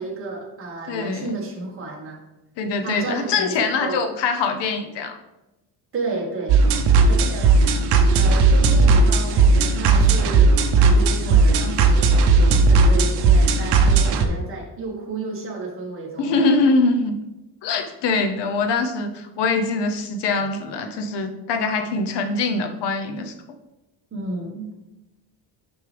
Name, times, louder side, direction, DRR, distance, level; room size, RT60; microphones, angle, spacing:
voice 1, 0.0-2.2 2.8-4.1 5.9-6.6 7.1-7.6 8.1-16.5 24.1-24.7, right 3 dB, 30° right, -2 dB, 1.4 m, -32 dB
voice 2, 0.9-1.4 2.6-5.2 16.2-17.2 17.6-23.3, left 3 dB, 75° left, 6 dB, 0.9 m, -23 dB
sound 1, 6.5-14.3, right 3 dB, 65° right, 0.8 m, -16 dB
6.9 x 5.3 x 3.3 m, 0.97 s
cardioid pair, 155°, 42 cm